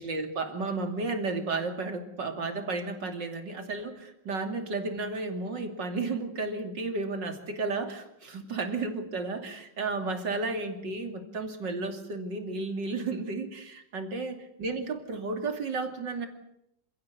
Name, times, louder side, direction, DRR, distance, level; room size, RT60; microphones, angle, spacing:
voice 1, 0.0-16.3, right 3 dB, 85° right, 6 dB, 3.4 m, -33 dB
27.5 x 17.0 x 8.2 m, 0.79 s
omnidirectional pair, 1.9 m